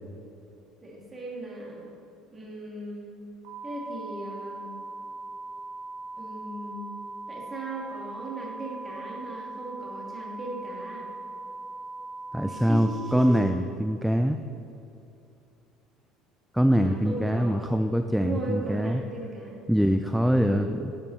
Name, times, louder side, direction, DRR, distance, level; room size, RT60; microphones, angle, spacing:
voice 1, 0.8-1.9 2.3-3.1 3.6-4.7 6.2-7.0 7.3-11.1 12.4-13.5 16.7-17.7 18.1-19.6 20.2-20.7, right 1 dB, 20° right, -3 dB, 2.7 m, -37 dB
sound 1, 3.4-13.4, right 2 dB, 75° right, 2.5 m, -40 dB
voice 2, 12.3-14.4 16.5-19.0 19.7-20.8, equal, ahead, 7 dB, 0.4 m, -24 dB
11.0 x 9.1 x 4.2 m, 2.7 s
cardioid pair, 130°, 0 cm